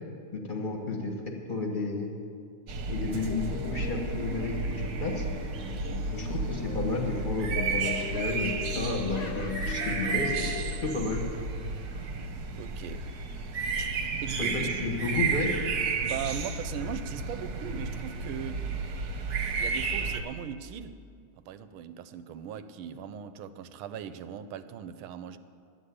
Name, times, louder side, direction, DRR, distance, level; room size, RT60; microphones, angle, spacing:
voice 1, 0.3-1.1 1.5-2.1 2.9-5.2 6.1-10.5 10.8-11.2 14.4-15.5, left 3 dB, 30° left, 2 dB, 1.3 m, -32 dB
sound 1, 2.7-20.2, right 4 dB, 55° right, 1.3 m, -32 dB
sound 2, 3.3-11.0, left 9 dB, 80° left, 1.3 m, -40 dB
voice 2, 5.6-6.1 11.7-11.8 12.5-13.1 13.8-13.9 14.2-14.7 16.0-18.6 19.6-21.0 21.4-25.4, right 9 dB, 85° right, 11 dB, 1.5 m, -39 dB
Laughter, 6.7-7.4 7.8-12.1, left 3 dB, 50° left, 0.4 m, -51 dB
10.5 x 8.2 x 9.8 m, 2.3 s
omnidirectional pair, 2.3 m